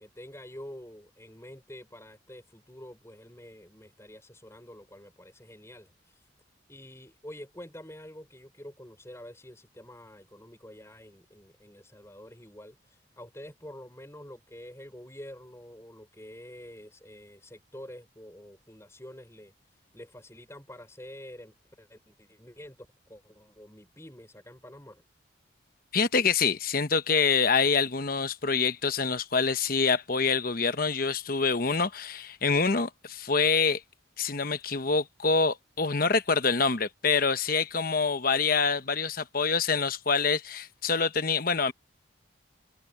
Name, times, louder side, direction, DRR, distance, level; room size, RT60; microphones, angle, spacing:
voice 1, 0.0-6.3 6.7-25.0, left 1 dB, 15° left, 6.3 m, -47 dB
voice 2, 25.9-33.8 34.2-41.7, left 5 dB, 45° left, 1.0 m, -26 dB
head